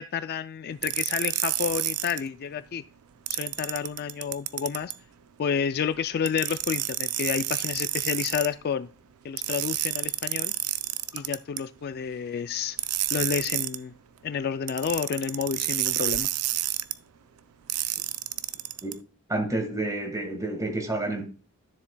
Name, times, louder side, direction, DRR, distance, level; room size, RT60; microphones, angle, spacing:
voice 1, 0.0-2.8 3.3-4.9 5.4-8.9 9.2-10.5 11.1-12.8 13.1-13.9 14.2-16.3, left 7 dB, 45° left, 0.3 m, -30 dB
sound 1, 0.8-2.2 3.3-5.0 6.3-8.5 9.4-11.6 12.8-13.8 14.7-16.9 17.7-18.9, right 15 dB, 70° right, 0.4 m, -29 dB
voice 2, 19.3-21.2, right 2 dB, 15° right, 1.6 m, -29 dB
12.5 x 7.1 x 2.2 m
head